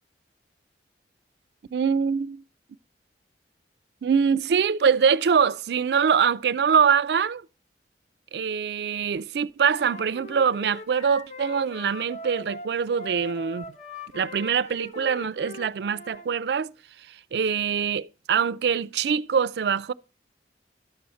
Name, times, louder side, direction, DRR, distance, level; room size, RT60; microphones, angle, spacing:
voice 1, 1.7-2.4 4.0-7.4 8.3-13.6 14.1-16.7 17.1-19.9, right 6 dB, 65° right, 0.4 m, -24 dB
Wind instrument woodwind instrument, 9.6-16.3, left 1 dB, 40° left, 1.0 m, -41 dB
11.5 x 7.0 x 4.2 m
head